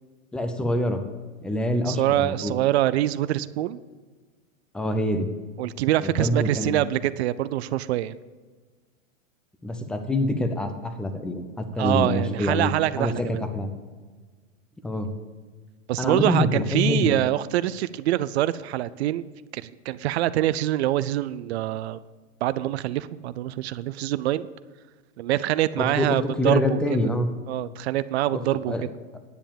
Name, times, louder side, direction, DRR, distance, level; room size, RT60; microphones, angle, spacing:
voice 1, 0.3-1.0 1.4-2.5 4.7-5.3 6.0-6.8 9.6-13.7 14.8-15.1 16.0-17.2 25.8-27.3 28.7-28.8, left 1 dB, ahead, 7 dB, 0.6 m, -26 dB
voice 2, 1.8-3.8 5.6-8.2 11.8-13.4 15.9-19.2 19.5-22.0 22.4-24.5 25.2-27.0 27.5-28.8, right 14 dB, 55° right, 16 dB, 0.5 m, -25 dB
10.5 x 7.1 x 7.0 m, 1.4 s
hypercardioid pair, 140°, 41 cm